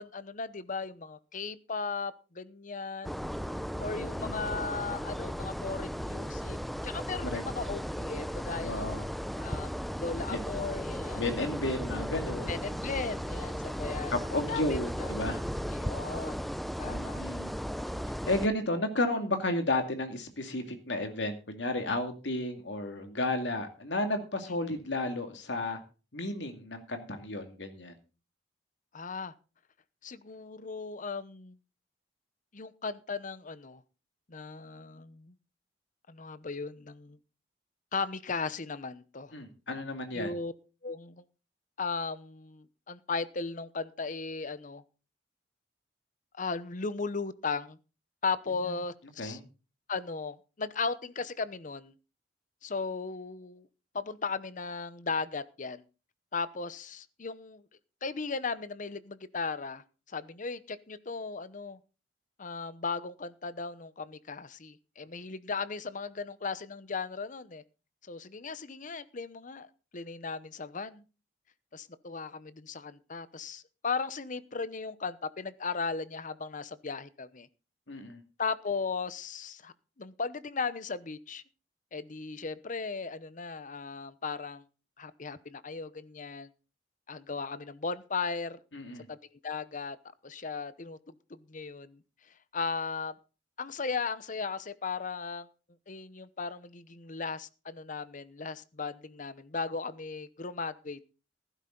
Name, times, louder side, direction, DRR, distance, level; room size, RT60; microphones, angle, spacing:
voice 1, 0.0-3.2 3.8-6.6 6.8-9.1 9.4-11.2 12.5-14.1 14.5-15.1 15.7-16.5 16.8-17.2 24.5-24.6 28.9-29.3 30.0-31.6 32.5-33.8 34.3-35.4 36.1-37.2 37.9-39.3 40.1-40.5 40.8-41.2 41.8-44.8 46.3-47.8 48.2-49.4 49.9-51.9 52.6-53.7 53.9-55.8 56.3-57.7 58.0-61.8 62.4-67.6 68.0-69.7 69.9-71.0 71.7-77.5 78.4-81.4 81.9-84.6 85.0-86.5 87.1-88.6 89.1-89.2 89.4-90.0 90.2-91.0 91.3-92.0 92.5-93.2 93.6-95.5 95.9-101.0, left 4 dB, 45° left, 15 dB, 0.9 m, -36 dB
sound 1, 3.0-18.5, equal, ahead, 0.5 m, -36 dB
voice 2, 4.0-4.4 7.2-7.4 8.6-9.0 10.3-10.4 11.1-12.6 14.1-15.4 16.8-17.5 18.3-25.8 26.1-27.9 39.3-40.3 48.6-48.7 49.2-49.5 77.9-78.2 88.7-89.1, left 2 dB, 80° left, 6 dB, 2.4 m, -33 dB
15.0 x 12.5 x 3.9 m, 0.34 s
head